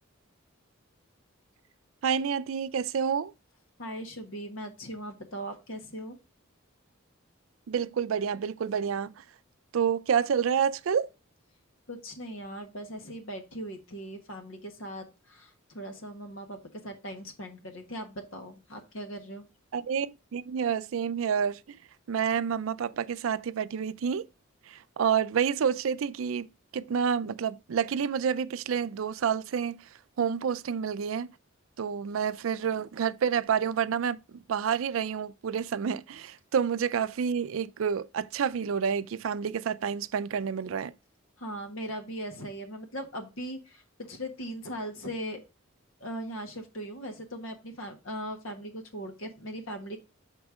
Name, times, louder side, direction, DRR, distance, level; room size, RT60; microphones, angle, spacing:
voice 1, 2.0-3.3 7.7-9.3 9.7-11.1 19.7-21.8 22.1-24.3 24.6-31.4 31.8-40.9, right 7 dB, 75° right, 0.4 m, -29 dB
voice 2, 3.8-6.2 11.9-19.5 41.4-45.4 46.0-50.0, equal, 70° left, 1.5 m, -39 dB
6.1 x 4.4 x 4.8 m
head